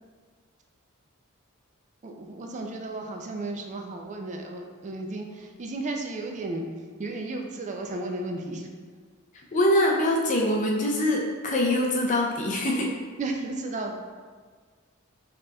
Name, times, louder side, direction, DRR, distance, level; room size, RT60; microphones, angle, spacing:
voice 1, 2.0-6.6 7.0-8.7 13.2-14.0, right 2 dB, 35° right, 3 dB, 0.4 m, -34 dB
voice 2, 9.3-12.9, left 1 dB, 35° left, -1 dB, 0.4 m, -24 dB
5.0 x 2.9 x 2.2 m, 1.6 s
head